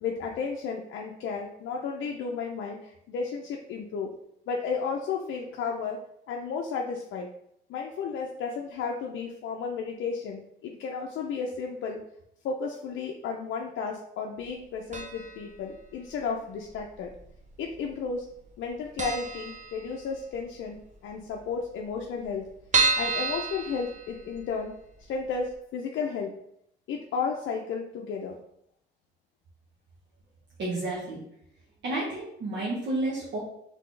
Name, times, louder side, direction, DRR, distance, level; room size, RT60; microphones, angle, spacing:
voice 1, 0.0-4.1 4.5-6.0 6.3-7.3 7.7-12.0 12.4-17.1 17.6-18.3 18.6-22.5 23.0-24.7 25.1-26.3 26.9-28.4, left 5 dB, 75° left, 0 dB, 0.5 m, -33 dB
sound 1, 14.9-15.5 15.7-15.8 16.7-17.4 17.7-17.9 18.2-18.3 18.6-18.7 19.0-20.3 20.7-20.8 21.0-21.1 21.3-21.4 21.9-24.6 25.0-25.1 25.5-25.6, right 4 dB, 35° right, 0.7 m, -29 dB
voice 2, 30.6-31.2 31.8-33.4, right 2 dB, 65° right, -6 dB, 1.2 m, -31 dB
4.1 x 3.3 x 3.2 m, 0.75 s
cardioid pair, 90°, 20 cm